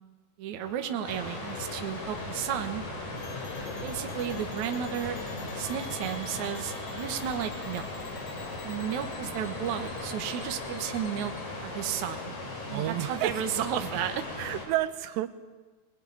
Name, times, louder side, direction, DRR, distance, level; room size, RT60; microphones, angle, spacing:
voice 1, 0.4-2.8 3.8-5.2 5.6-7.9 8.6-11.3 11.6-12.2 12.7-14.2, right 9 dB, 60° right, 6 dB, 2.3 m, -33 dB
sound 1, 0.6-10.2, equal, 20° left, 8.4 m, -49 dB
sound 2, 1.0-14.7, left 2 dB, 45° left, 5.2 m, -38 dB
sound 3, 3.2-11.4, left 7 dB, 60° left, 1.8 m, -49 dB
voice 2, 12.7-14.0 14.4-15.3, right 14 dB, 85° right, 12 dB, 3.1 m, -31 dB
22.0 x 21.0 x 9.8 m, 1.4 s
omnidirectional pair, 4.9 m